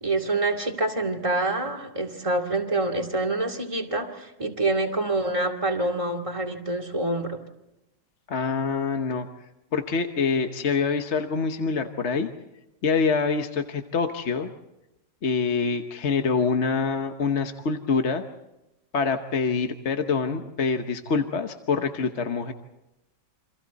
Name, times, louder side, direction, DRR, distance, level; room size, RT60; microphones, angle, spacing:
voice 1, 0.0-7.4, right 2 dB, 15° right, 1 dB, 2.2 m, -26 dB
voice 2, 8.3-9.3 9.7-12.3 12.8-14.5 15.2-18.2 18.9-22.5, left 5 dB, 45° left, 6 dB, 1.2 m, -25 dB
29.0 x 26.0 x 4.1 m, 0.93 s
omnidirectional pair, 2.0 m